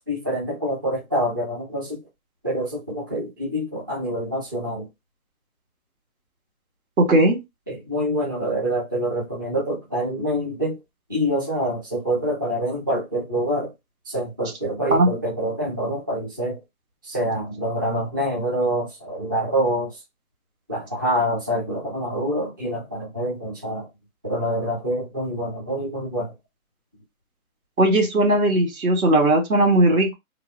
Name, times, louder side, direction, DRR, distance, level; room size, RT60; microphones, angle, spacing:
voice 1, 0.1-2.0 2.4-4.9 7.7-10.8 11.1-13.7 14.1-16.6 17.0-20.0 20.7-23.9 24.2-26.3, equal, 15° right, 0.4 m, -26 dB
voice 2, 7.0-7.4 14.9-15.1 27.8-30.1, right 1 dB, 80° right, 2.1 m, -18 dB
3.2 x 2.1 x 3.9 m
hypercardioid pair, 160°, 42 cm